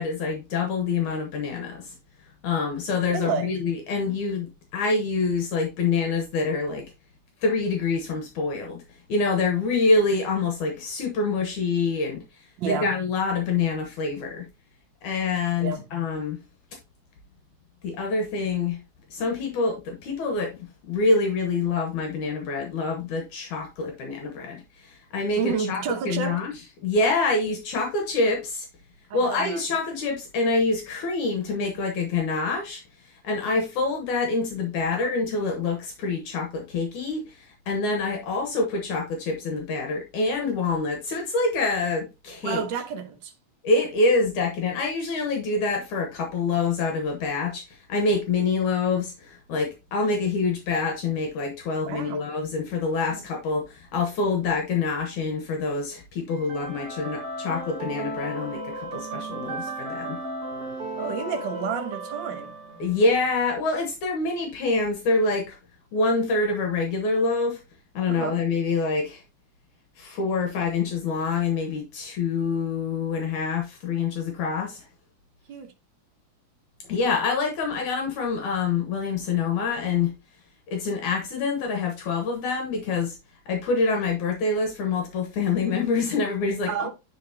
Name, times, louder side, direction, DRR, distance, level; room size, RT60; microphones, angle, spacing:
voice 1, 0.0-1.9 2.4-6.9 7.4-8.8 9.1-12.3 12.7-14.5 15.0-16.4 17.8-18.8 19.1-25.8 26.1-26.5 26.8-28.7 29.1-42.6 43.6-60.2 62.8-65.6 65.9-67.6 67.9-69.2 70.0-74.9 76.9-80.2 80.7-83.2 83.5-86.9, left 4 dB, 70° left, 2.5 m, -26 dB
voice 2, 3.1-3.5 12.6-12.9 15.6-15.8 25.4-26.4 29.1-29.6 34.9-35.2 42.4-43.3 51.8-52.3 53.1-53.2 60.9-62.5 68.1-68.4 75.5-75.7 86.7-86.9, right 6 dB, 75° right, 1.1 m, -30 dB
sound 1, 56.3-63.3, right 2 dB, 50° right, 2.5 m, -35 dB
9.1 x 4.9 x 2.8 m
omnidirectional pair, 3.7 m